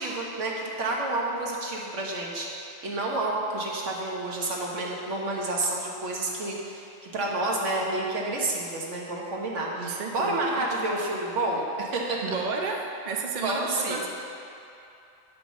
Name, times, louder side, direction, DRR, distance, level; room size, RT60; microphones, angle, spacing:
voice 1, 0.0-12.4 13.4-14.0, right 2 dB, 80° right, -3 dB, 1.5 m, -29 dB
voice 2, 9.8-10.6 12.2-12.8 13.0-14.1, right 4 dB, 45° right, 1 dB, 0.8 m, -32 dB
8.7 x 5.2 x 6.2 m, 2.7 s
omnidirectional pair, 1.3 m